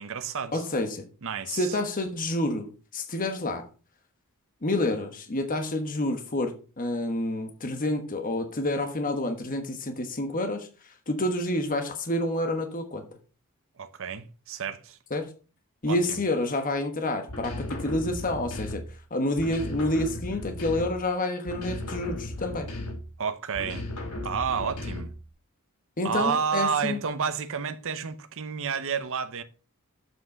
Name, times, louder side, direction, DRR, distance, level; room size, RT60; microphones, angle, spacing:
voice 1, 0.0-0.6 1.2-1.7 13.8-15.0 15.9-16.2 23.2-23.9 24.2-25.1 26.0-29.4, right 6 dB, 65° right, 0.8 m, -30 dB
voice 2, 0.5-1.1 1.5-3.6 4.6-10.7 11.1-13.0 15.1-15.3 15.8-18.8 19.1-22.7 26.0-27.0, left 1 dB, 40° left, 1.3 m, -28 dB
sound 1, 17.3-19.0 19.4-21.1 21.5-23.2 23.5-25.3, left 1 dB, 85° left, 2.4 m, -36 dB
7.7 x 6.1 x 5.2 m
head